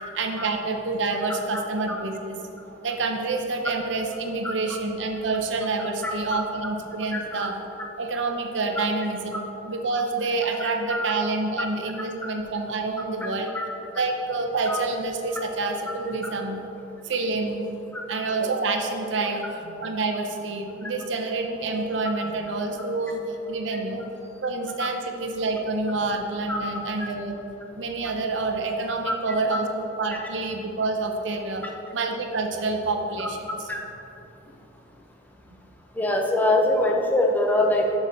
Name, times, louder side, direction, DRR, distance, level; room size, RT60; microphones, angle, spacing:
voice 1, 0.2-2.4 2.7-7.6 8.0-13.5 13.9-16.6 17.0-17.7 18.1-24.0 24.4-27.4 27.7-31.7 31.9-33.7, right 3 dB, 75° right, 4 dB, 0.7 m, -28 dB
voice 2, 6.0-6.4 7.1-7.5 10.6-11.1 11.6-11.7 12.2-12.3 13.2-13.3 13.5-13.7 14.7-14.8 17.9-18.0 22.0-22.1 24.8-24.9 26.5-26.6 29.1-29.2 33.2-33.3 33.7-33.8 36.0-38.0, left 1 dB, 10° left, 1 dB, 0.6 m, -24 dB
6.9 x 6.5 x 4.0 m, 2.9 s
head